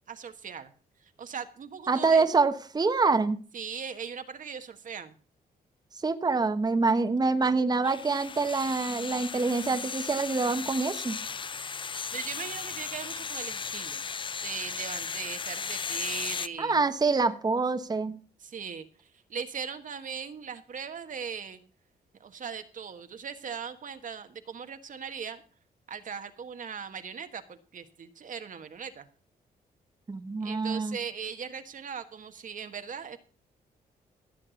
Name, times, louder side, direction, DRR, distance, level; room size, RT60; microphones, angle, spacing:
voice 1, 0.1-0.7 1.0-2.3 3.5-5.1 12.1-14.0 14.4-16.8 18.4-21.6 22.2-25.4 25.9-29.1 30.4-33.2, right 6 dB, 55° right, 8 dB, 1.4 m, -39 dB
voice 2, 1.9-3.4 6.0-11.2 16.6-18.2 30.1-31.0, right 4 dB, 25° right, 8 dB, 1.2 m, -26 dB
sound 1, 7.8-16.5, left 5 dB, 30° left, 0.6 m, -36 dB
15.5 x 7.7 x 5.1 m, 0.39 s
cardioid pair, 100°, 16 cm